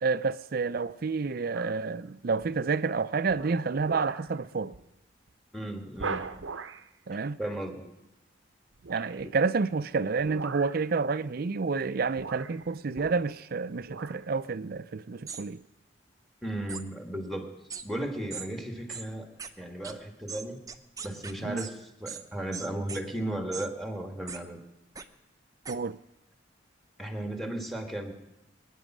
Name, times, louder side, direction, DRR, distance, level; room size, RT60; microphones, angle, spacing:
voice 1, 0.0-4.8 7.1-7.4 8.9-15.6 21.4-21.6 25.7-26.0, right 4 dB, 50° right, 0.5 m, -29 dB
sound 1, 1.5-1.9 2.4-2.8 3.3-4.3 4.7-4.9 5.3-5.4 6.0-6.9 8.8-9.3 10.2-10.9 11.7-11.9 12.2-13.5 13.8-14.2 14.7-14.8, right 4 dB, 80° right, 0.7 m, -39 dB
voice 2, 5.5-6.3 7.4-7.9 9.2-9.3 16.4-17.5 17.8-19.3 19.6-20.6 21.0-24.6 27.0-28.1, right 1 dB, ahead, 1.9 m, -35 dB
sound 2, 15.3-15.4 16.7-16.8 17.7-17.8 18.3-18.5 18.9-19.0 19.4-19.5 19.8-19.9 20.3-21.7 22.1-22.2 22.5-23.0 23.5-23.7 24.3-24.4 25.0-25.1 25.6-25.8, right 6 dB, 20° right, 0.8 m, -39 dB
23.0 x 10.0 x 6.2 m
head